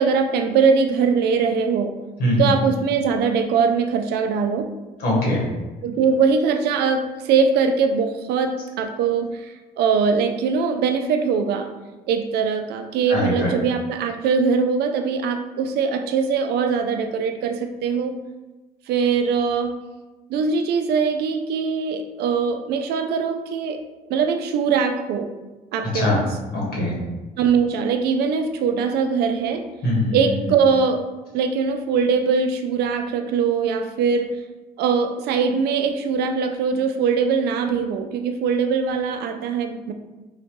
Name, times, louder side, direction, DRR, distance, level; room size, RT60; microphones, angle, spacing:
voice 1, 0.0-2.0 2.4-4.7 5.8-11.7 12.1-18.1 18.9-19.7 20.3-23.8 24.1-25.3 25.7-26.2 27.4-29.7 30.1-31.1 31.3-34.3 34.8-39.9, right 5 dB, 75° right, 6 dB, 0.4 m, -21 dB
voice 2, 2.2-2.5 5.0-5.4 13.1-13.5 25.9-26.2 26.5-27.0 29.8-30.3, left 1 dB, 65° left, -4 dB, 1.3 m, -21 dB
4.0 x 2.1 x 3.0 m, 1.1 s
cardioid pair, 110°, 17 cm